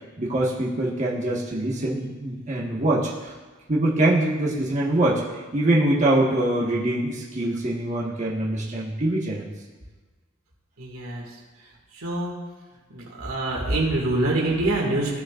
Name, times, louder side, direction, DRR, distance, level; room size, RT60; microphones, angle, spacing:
voice 1, 0.2-3.3 3.7-5.2 5.5-9.5, right 1 dB, 35° right, -6 dB, 1.4 m, -23 dB
voice 2, 10.8-11.2 11.9-12.4 12.9-15.2, right 2 dB, 90° right, -2 dB, 2.1 m, -25 dB
15.5 x 6.4 x 2.5 m, 1.3 s
head